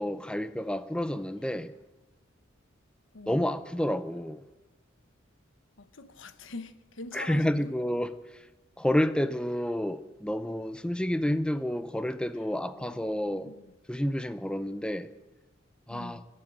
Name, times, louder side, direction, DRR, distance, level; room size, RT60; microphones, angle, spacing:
voice 1, 0.0-1.7 3.3-4.4 7.1-8.5 8.8-13.5 13.9-15.1 15.9-16.2, left 1 dB, 5° left, 0.5 m, -30 dB
voice 2, 3.1-3.5 5.8-7.7 12.8-13.7 15.9-16.3, left 2 dB, 75° left, 1.0 m, -44 dB
22.0 x 7.6 x 8.4 m
head